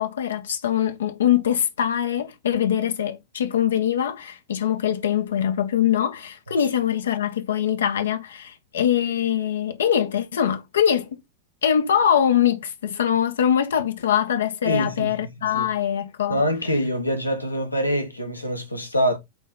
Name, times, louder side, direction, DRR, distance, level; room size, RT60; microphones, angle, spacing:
voice 1, 0.0-11.1 11.6-16.4, left 9 dB, 65° left, 0.7 m, -23 dB
voice 2, 14.6-15.7 16.3-19.2, equal, 85° left, 1.3 m, -25 dB
8.0 x 3.1 x 3.9 m
figure-of-eight pair, 90°, 0 cm